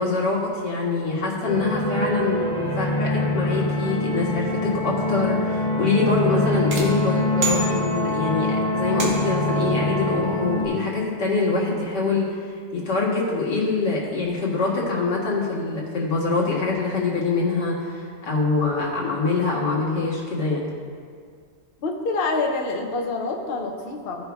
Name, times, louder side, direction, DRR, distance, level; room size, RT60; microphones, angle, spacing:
voice 1, 0.0-12.4 12.7-20.6, left 3 dB, 90° left, -4 dB, 2.4 m, -24 dB
sound 1, 1.4-10.7, left 1 dB, 5° left, 2.5 m, -24 dB
sound 2, 6.7-8.3 9.0-9.5, right 3 dB, 65° right, 1.7 m, -30 dB
voice 2, 21.8-24.2, left 3 dB, 45° left, 1 dB, 0.9 m, -26 dB
15.5 x 5.2 x 3.5 m, 2.1 s
omnidirectional pair, 1.8 m